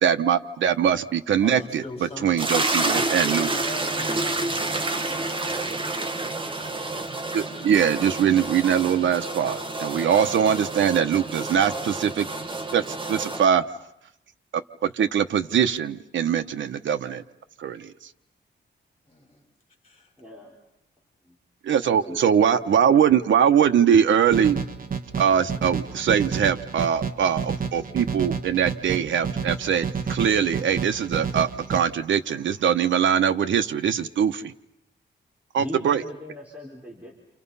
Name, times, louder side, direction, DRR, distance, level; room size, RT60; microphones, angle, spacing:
voice 1, 0.0-1.8 2.2-3.5 7.3-12.3 12.7-13.6 14.8-17.2 17.6-17.9 21.6-24.6 25.2-34.5 35.5-36.0, right 8 dB, 90° right, 9 dB, 1.1 m, -22 dB
voice 2, 1.4-2.5 2.8-7.0 19.1-19.4 19.8-20.1, left 1 dB, 30° left, 2 dB, 6.8 m, -42 dB
sound 1, 2.4-13.4, right 2 dB, 25° right, 1.7 m, -29 dB
voice 3, 20.2-20.5 21.2-21.4 21.8-23.0 35.6-37.1, left 1 dB, 5° right, -3 dB, 4.2 m, -40 dB
sound 2, 24.3-31.8, right 6 dB, 50° right, 1.6 m, -30 dB
30.0 x 28.0 x 5.6 m, 0.79 s
wide cardioid pair, 140°, 19 cm